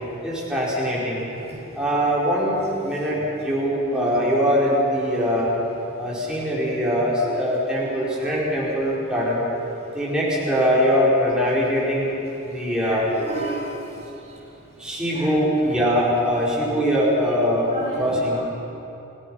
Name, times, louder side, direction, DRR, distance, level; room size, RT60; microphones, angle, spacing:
voice 1, 0.2-1.2 1.7-5.5 6.0-9.4 9.9-12.1 12.5-13.0 14.8-18.4, equal, 5° right, -7 dB, 4.3 m, -22 dB
voice 2, 12.8-13.7 15.2-15.3 17.7-18.2, right 2 dB, 30° right, -5 dB, 7.3 m, -32 dB
29.5 x 17.0 x 6.2 m, 2.9 s
head